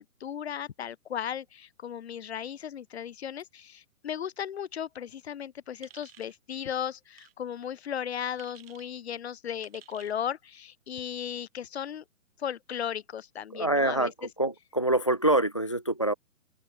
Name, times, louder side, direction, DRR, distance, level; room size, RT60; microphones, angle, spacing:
voice 1, 0.0-12.0 12.4-14.3, left 9 dB, 50° left, 1.9 m, -36 dB
sound 1, 5.8-6.4 7.1-7.3 8.4-8.9 9.6-10.2, right 10 dB, 45° right, 6.5 m, -53 dB
voice 2, 13.5-14.1 14.4-16.1, right 1 dB, 25° left, 0.4 m, -25 dB
open air
hypercardioid pair, 150°, 42 cm